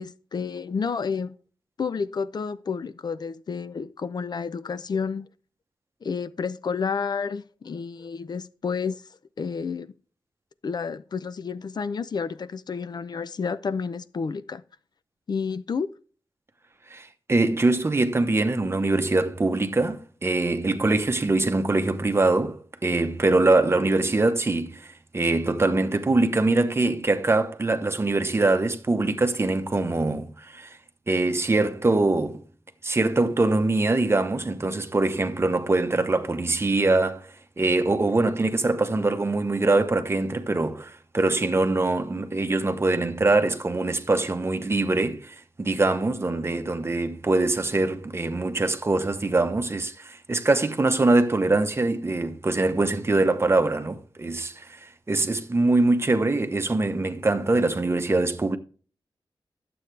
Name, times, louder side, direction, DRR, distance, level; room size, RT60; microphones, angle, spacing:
voice 1, 0.0-1.3 1.8-5.3 6.0-9.0 9.4-9.9 10.6-14.6 15.3-15.9, left 5 dB, 50° left, 0.5 m, -30 dB
voice 2, 16.9-30.8 31.1-32.4 32.8-37.3 37.6-58.6, right 2 dB, 30° right, 0.9 m, -23 dB
12.0 x 7.8 x 3.3 m
wide cardioid pair, 120°, 9 cm